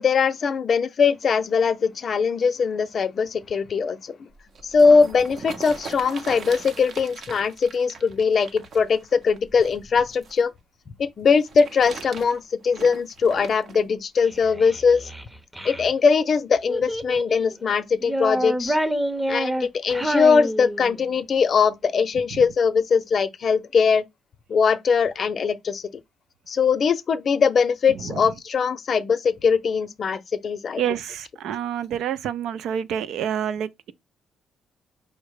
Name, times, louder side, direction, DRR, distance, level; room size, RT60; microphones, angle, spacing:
voice 1, 0.0-4.2 4.6-10.5 11.0-15.1 15.6-18.8 19.3-24.0 24.5-25.9 26.5-30.8, left 5 dB, 50° left, 0.6 m, -21 dB
sound 1, 4.3-10.4 11.3-13.8 14.5-14.6, right 5 dB, 55° right, 0.7 m, -40 dB
Child speech kid speaking, 14.2-15.9 16.7-17.5 18.0-21.1, right 1 dB, 10° right, 0.7 m, -28 dB
voice 2, 27.9-28.3 30.8-33.7, right 9 dB, 80° right, 0.4 m, -28 dB
4.9 x 2.1 x 4.7 m
cardioid pair, 90°, 0 cm